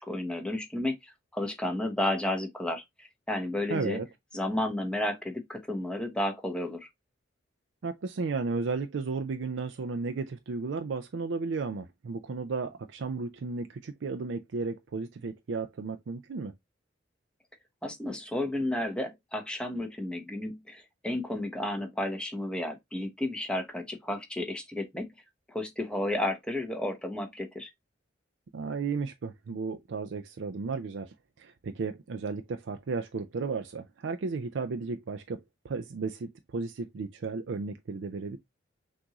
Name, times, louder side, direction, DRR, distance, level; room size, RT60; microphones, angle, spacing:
voice 1, 0.0-4.0 4.3-6.9 17.8-25.1 25.5-27.7, left 1 dB, 5° left, 0.9 m, -32 dB
voice 2, 3.7-4.1 7.8-16.5 28.5-38.4, right 4 dB, 75° right, 0.4 m, -34 dB
6.0 x 2.6 x 2.9 m
head